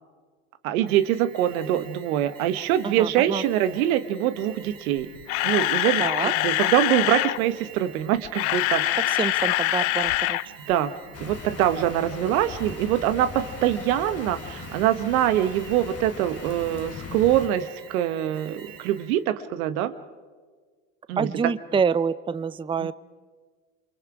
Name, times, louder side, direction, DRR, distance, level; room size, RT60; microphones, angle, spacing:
voice 1, 0.6-5.1 5.4-9.0 10.7-10.9 11.2-19.9 21.1-21.3 22.8-22.9, right 11 dB, 80° right, 11 dB, 1.2 m, -24 dB
Alarm, 0.9-19.3, right 7 dB, 55° right, 6.1 m, -47 dB
voice 2, 2.8-3.4 6.0-6.3 9.1-10.4 21.2-22.9, right 6 dB, 10° right, 17 dB, 0.5 m, -26 dB
Camera, 5.0-7.4 8.2-10.4 10.7-10.9 11.3-11.4, left 18 dB, 80° left, 0.7 m, -24 dB
sound 1, 11.1-17.5, left 6 dB, 35° left, 1.7 m, -39 dB
28.5 x 24.0 x 4.9 m, 1.5 s
hypercardioid pair, 70°, 42 cm